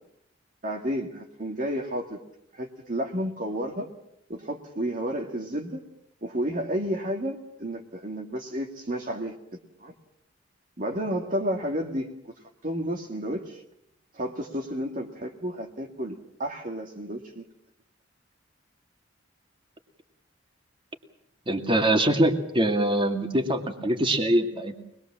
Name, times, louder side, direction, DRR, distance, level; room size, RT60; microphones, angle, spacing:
voice 1, 0.6-2.2 2.6-3.9 4.3-5.8 6.2-9.3 9.8-9.9 10.8-12.3 12.6-13.4 14.2-17.4, equal, 45° right, 2 dB, 2.0 m, -31 dB
voice 2, 21.5-24.8, right 1 dB, 30° right, 5 dB, 2.3 m, -23 dB
24.5 x 21.0 x 7.4 m, 0.78 s
head